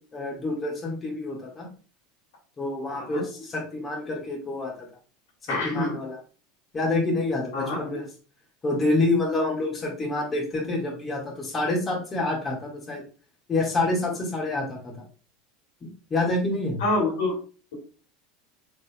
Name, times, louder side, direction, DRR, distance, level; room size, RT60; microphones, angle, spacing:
voice 1, 0.0-1.7 2.6-4.9 5.4-6.2 6.7-8.1 8.6-13.0 13.5-15.0 15.8-16.8, left 2 dB, 25° left, -2 dB, 1.8 m, -27 dB
voice 2, 2.9-3.2 5.5-6.0 7.5-7.8 16.8-17.3, left 2 dB, 70° left, -1 dB, 2.2 m, -26 dB
4.9 x 4.2 x 2.3 m, 0.37 s
hypercardioid pair, 75°, 0 cm